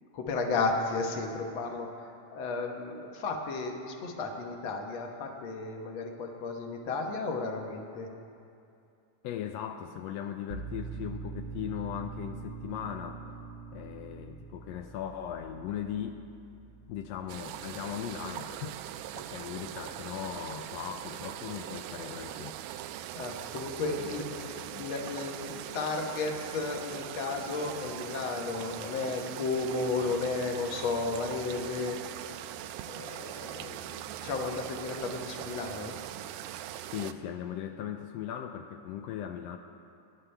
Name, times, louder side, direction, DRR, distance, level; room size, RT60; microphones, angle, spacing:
voice 1, 0.1-8.1 23.1-32.4 32.9-35.9, left 3 dB, 55° left, 2 dB, 1.5 m, -34 dB
voice 2, 9.2-13.2 13.7-16.2 16.9-22.6 36.9-39.6, left 9 dB, 85° left, 5 dB, 1.4 m, -38 dB
sound 1, 10.5-21.8, right 5 dB, 45° right, 1.3 m, -45 dB
sound 2, 17.3-37.1, right 11 dB, 80° right, 1.9 m, -41 dB
24.0 x 11.0 x 3.4 m, 2.5 s
omnidirectional pair, 3.5 m